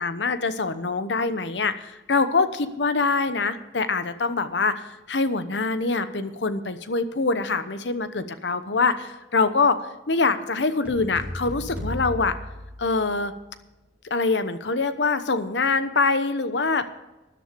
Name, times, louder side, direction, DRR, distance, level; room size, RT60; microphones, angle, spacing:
voice 1, 0.0-9.8 10.1-12.3 12.8-13.3 14.1-16.8, left 4 dB, 85° left, 11 dB, 1.0 m, -24 dB
sound 1, 10.8-13.4, left 1 dB, 10° right, 4.5 m, -35 dB
13.5 x 11.0 x 5.2 m, 1.1 s
head